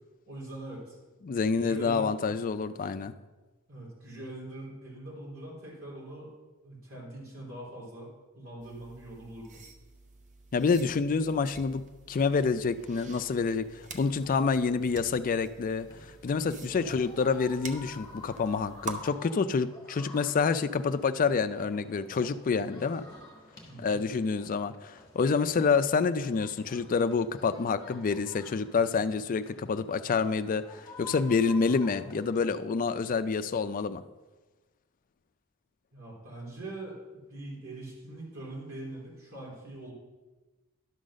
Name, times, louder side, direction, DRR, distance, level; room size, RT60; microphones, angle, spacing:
voice 1, 0.3-1.0 1.3-2.2 3.7-6.3 6.6-8.1 8.3-9.6 16.6-16.8 23.7-24.0 35.9-37.0 37.3-39.9, right 1 dB, 75° right, -5 dB, 3.4 m, -43 dB
voice 2, 1.2-3.1 10.5-11.8 12.1-23.0 23.8-34.0, left 5 dB, 40° left, 11 dB, 0.4 m, -28 dB
sound 1, 8.6-19.0, right 3 dB, 35° right, 0.7 m, -47 dB
sound 2, 12.8-32.5, left 3 dB, 20° left, 1.6 m, -52 dB
11.5 x 3.9 x 6.3 m, 1.2 s
head